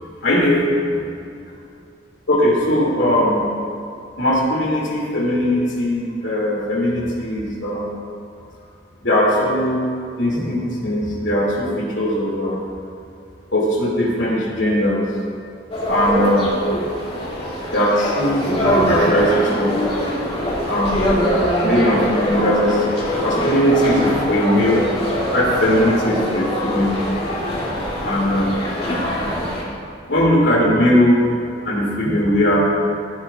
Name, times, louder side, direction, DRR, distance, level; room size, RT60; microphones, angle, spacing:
voice 1, 0.2-0.6 0.9-1.0 2.3-3.5 4.2-7.9 9.0-9.8 10.2-12.6 13.5-15.1 15.9-16.5 17.7-19.8 20.7-21.2 21.6-22.8 23.2-24.8 25.3-27.0 28.0-28.5 30.1-31.2 31.6-32.6, left 1 dB, 85° left, -4 dB, 2.4 m, -19 dB
sound 1, 15.7-29.6, equal, 35° left, 2.4 m, -23 dB
15.0 x 9.2 x 2.4 m, 2.4 s
head